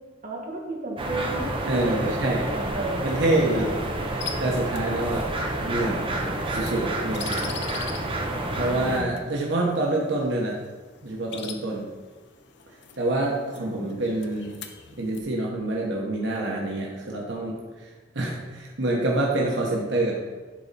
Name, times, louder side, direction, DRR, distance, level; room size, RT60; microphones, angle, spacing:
voice 1, 0.2-1.5 1.8-3.8 8.7-9.2 13.6-13.9, right 2 dB, 50° right, -1 dB, 1.5 m, -34 dB
sound 1, 1.0-9.0, right 1 dB, 30° right, 0.8 m, -29 dB
voice 2, 1.6-2.4 3.0-3.7 4.1-5.3 5.6-6.0 6.5-7.5 8.6-10.6 11.0-11.9 13.0-14.5 14.9-20.3, right 2 dB, 75° right, -2 dB, 1.1 m, -26 dB
sound 2, 4.2-15.2, left 7 dB, 65° left, 0.7 m, -43 dB
10.5 x 4.2 x 4.1 m, 1.3 s
head